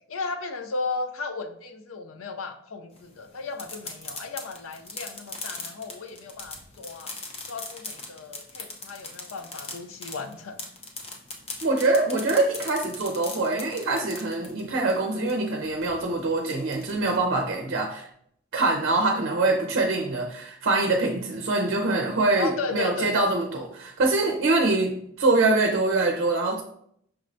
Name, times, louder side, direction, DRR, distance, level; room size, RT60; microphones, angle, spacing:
voice 1, 0.1-7.1 7.5-10.6 15.1-15.3 22.4-23.1, left 4 dB, 80° left, 8 dB, 0.5 m, -35 dB
sound 1, 3.0-17.2, left 3 dB, 30° left, 0.7 m, -40 dB
voice 2, 11.6-18.1 18.5-26.6, right 2 dB, 55° right, 2 dB, 0.6 m, -24 dB
5.9 x 3.2 x 2.6 m, 0.67 s
head